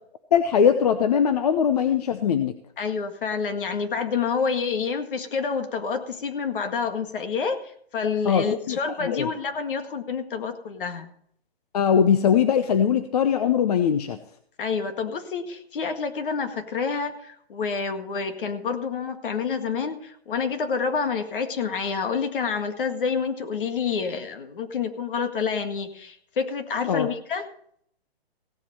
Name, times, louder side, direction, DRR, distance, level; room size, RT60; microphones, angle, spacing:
voice 1, 0.3-2.6 8.3-9.3 11.7-14.2 26.9-27.1, left 8 dB, 40° left, 10 dB, 0.8 m, -21 dB
voice 2, 2.8-7.6 7.9-11.1 14.6-27.5, left 5 dB, 55° left, 7 dB, 1.9 m, -28 dB
16.5 x 7.4 x 5.4 m, 0.65 s
hypercardioid pair, 160°, 32 cm